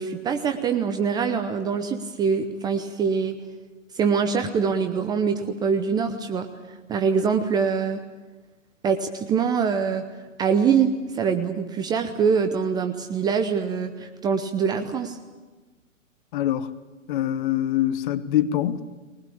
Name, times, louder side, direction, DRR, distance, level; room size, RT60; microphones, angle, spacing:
voice 1, 0.0-3.3 3.9-6.5 6.9-8.0 8.8-10.0 10.4-15.2, right 6 dB, 10° right, 0.6 m, -24 dB
voice 2, 16.3-16.7 17.1-18.8, left 12 dB, 40° left, 1.2 m, -24 dB
21.5 x 20.0 x 8.6 m
figure-of-eight pair, 125°, 40 cm